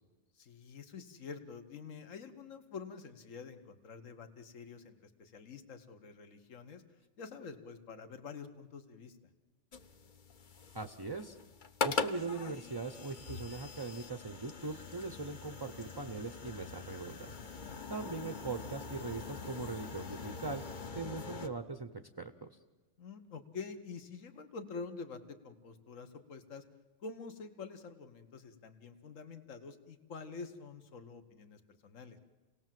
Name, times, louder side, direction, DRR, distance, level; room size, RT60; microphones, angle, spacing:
voice 1, 0.3-6.8 7.2-9.2 17.6-18.1 23.0-26.6 27.0-32.2, left 5 dB, 70° left, 8 dB, 1.7 m, -47 dB
sound 1, 9.7-21.5, left 4 dB, 40° left, 1.0 m, -42 dB
voice 2, 10.7-11.4 11.8-17.4 17.9-20.6 21.0-21.9 22.2-22.6, right 3 dB, 25° right, 9 dB, 0.6 m, -40 dB
29.0 x 18.5 x 7.6 m, 1.3 s
omnidirectional pair, 1.4 m